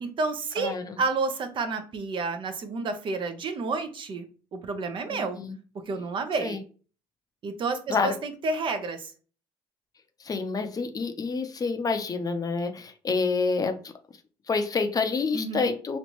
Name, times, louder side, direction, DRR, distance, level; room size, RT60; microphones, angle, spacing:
voice 1, 0.0-4.3 4.5-5.4 5.9-6.6 7.4-9.1 15.3-15.7, right 3 dB, 50° right, 7 dB, 0.7 m, -30 dB
voice 2, 0.6-1.0 5.1-5.6 6.4-6.6 7.9-8.2 10.2-13.9 14.5-16.0, left 4 dB, 35° left, 7 dB, 0.6 m, -28 dB
3.2 x 2.5 x 3.0 m, 0.37 s
supercardioid pair, 70°, 11 cm